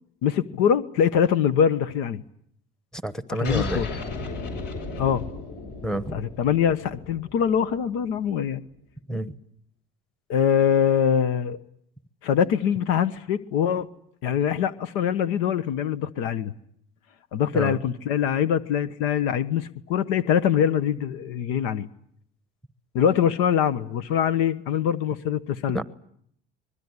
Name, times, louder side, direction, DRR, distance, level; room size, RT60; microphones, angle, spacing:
voice 1, 0.2-2.2 3.3-3.9 5.0-5.3 6.1-8.6 10.3-11.6 12.2-13.9 14.2-16.5 17.3-21.9 22.9-25.8, left 8 dB, 85° left, 14 dB, 1.2 m, -23 dB
voice 2, 2.9-3.9 5.8-6.2 9.1-9.3 17.5-17.8 25.7-25.8, right 1 dB, 5° left, 12 dB, 1.0 m, -29 dB
sound 1, 3.4-8.5, left 3 dB, 55° left, 6.9 m, -35 dB
24.5 x 21.5 x 9.7 m, 0.68 s
cardioid pair, 165°, 21 cm